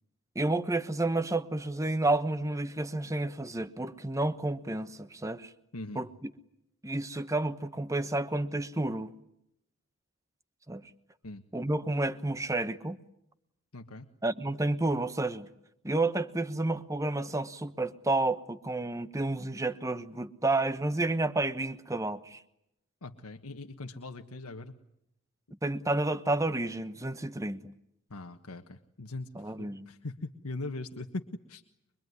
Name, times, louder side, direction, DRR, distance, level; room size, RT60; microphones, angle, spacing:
voice 1, 0.3-5.5 5.9-6.1 6.8-9.1 10.7-10.8 11.5-13.0 14.2-15.5 15.8-22.4 25.6-27.7 29.4-29.9, right 2 dB, 15° right, 1.0 m, -30 dB
voice 2, 5.7-6.0 11.2-11.4 13.7-14.1 23.0-24.8 28.1-31.6, left 2 dB, 85° left, 1.5 m, -41 dB
24.0 x 24.0 x 9.6 m
head